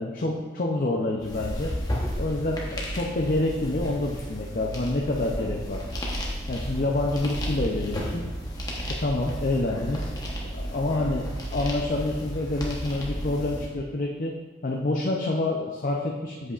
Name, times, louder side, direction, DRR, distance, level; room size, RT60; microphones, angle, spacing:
voice 1, 0.0-1.7 2.1-5.8 6.5-8.3 8.9-10.1 10.4-14.4 14.6-16.5, left 2 dB, 40° left, -1 dB, 0.5 m, -27 dB
sound 1, 1.2-13.7, equal, 20° left, 1.0 m, -33 dB
8.3 x 7.5 x 2.5 m, 1.3 s
head